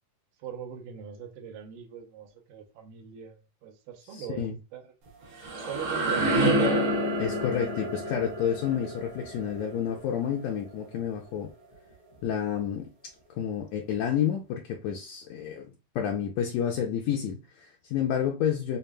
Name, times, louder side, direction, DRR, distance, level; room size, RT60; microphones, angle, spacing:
voice 1, 0.4-4.8 5.5-6.6, right 8 dB, 90° right, 2.5 m, -41 dB
voice 2, 4.2-4.5 7.2-11.5 12.2-12.9 13.4-18.8, left 9 dB, 80° left, 1.5 m, -30 dB
sound 1, 5.1-10.8, right 1 dB, 70° right, 1.2 m, -28 dB
6.7 x 2.4 x 2.2 m
omnidirectional pair, 3.7 m